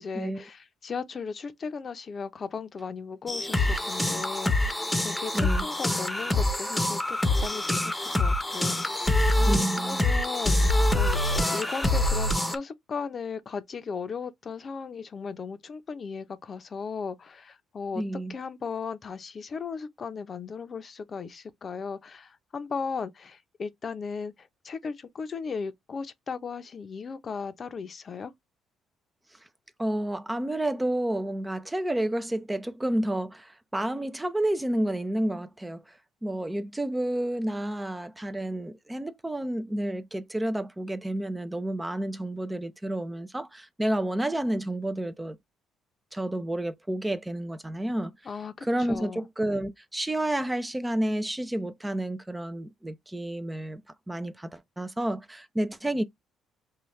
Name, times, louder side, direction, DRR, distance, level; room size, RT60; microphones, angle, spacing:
voice 1, 0.0-18.0 18.3-28.3 48.2-49.3, left 5 dB, 40° left, 0.7 m, -37 dB
sound 1, 3.3-12.6, left 1 dB, 10° left, 0.9 m, -25 dB
voice 2, 5.3-5.7 9.4-10.0 18.0-18.3 29.8-45.4 46.1-48.1 48.6-53.8 54.1-56.0, right 1 dB, 10° right, 0.5 m, -30 dB
5.5 x 2.4 x 3.1 m
cardioid pair, 95°, 0 cm